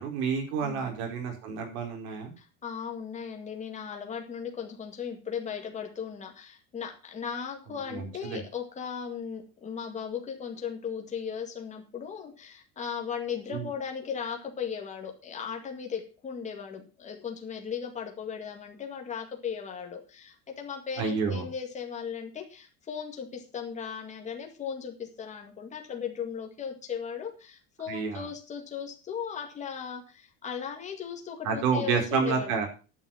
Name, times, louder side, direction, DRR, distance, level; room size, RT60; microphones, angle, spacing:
voice 1, 0.0-2.3 7.9-8.4 13.5-13.7 21.0-21.5 27.9-28.3 31.4-32.7, right 5 dB, 85° right, 3 dB, 4.8 m, -29 dB
voice 2, 2.4-32.6, left 7 dB, 15° left, 3 dB, 2.0 m, -37 dB
11.0 x 6.5 x 7.2 m, 0.35 s
cardioid pair, 180°, 42 cm